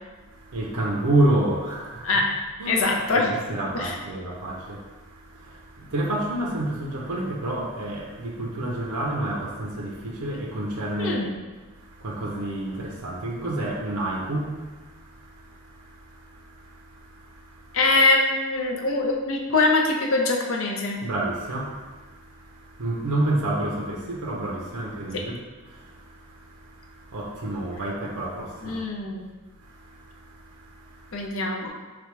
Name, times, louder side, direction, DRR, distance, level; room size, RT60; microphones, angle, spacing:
voice 1, 0.3-2.1 2.6-11.3 11.6-17.8 21.0-28.8 29.6-31.3, right 1 dB, 85° right, -1 dB, 0.6 m, -30 dB
voice 2, 2.7-3.3 3.7-3.9 11.0-11.4 17.7-21.0 25.1-25.3 28.6-29.3 31.1-31.7, left 3 dB, 60° left, 1 dB, 0.6 m, -23 dB
3.6 x 3.4 x 3.2 m, 1.3 s
head